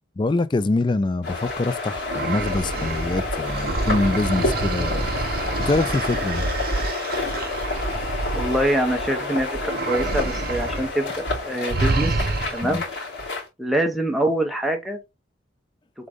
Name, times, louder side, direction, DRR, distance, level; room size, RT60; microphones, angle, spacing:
voice 1, 0.2-5.1 5.6-6.5 12.6-12.8, left 2 dB, 25° left, 0.3 m, -24 dB
sound 1, 1.2-13.5, left 2 dB, 70° left, 2.9 m, -29 dB
sound 2, 2.1-9.2 9.6-10.9 11.2-11.3 11.7-12.8, right 3 dB, 55° right, 0.7 m, -28 dB
voice 2, 8.3-12.1 12.5-12.8 13.6-15.0, right 1 dB, ahead, 0.8 m, -24 dB
3.8 x 3.8 x 3.5 m
head